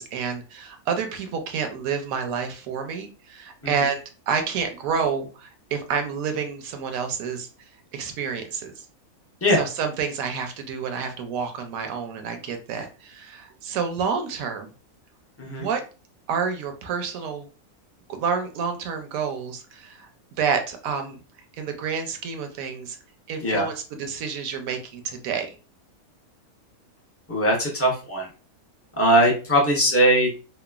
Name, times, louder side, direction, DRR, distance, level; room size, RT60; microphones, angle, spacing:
voice 1, 0.0-7.5 7.9-8.9 9.5-14.7 15.4-15.8 16.3-17.5 18.1-21.2 21.6-23.0 23.3-25.6, right 6 dB, 75° right, 6 dB, 1.0 m, -29 dB
voice 2, 27.3-28.3 29.0-30.3, right 1 dB, 20° left, -3 dB, 0.4 m, -20 dB
3.0 x 2.1 x 2.3 m, 0.34 s
omnidirectional pair, 1.5 m